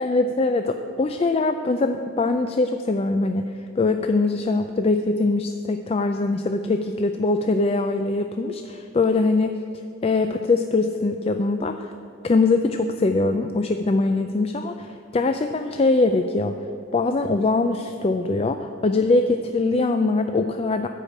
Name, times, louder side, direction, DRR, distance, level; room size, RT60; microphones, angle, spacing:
voice 1, 0.0-9.6 10.0-11.9 12.2-16.6 16.9-20.9, left 3 dB, 30° left, 7 dB, 0.3 m, -22 dB
13.5 x 4.9 x 8.6 m, 2.7 s
head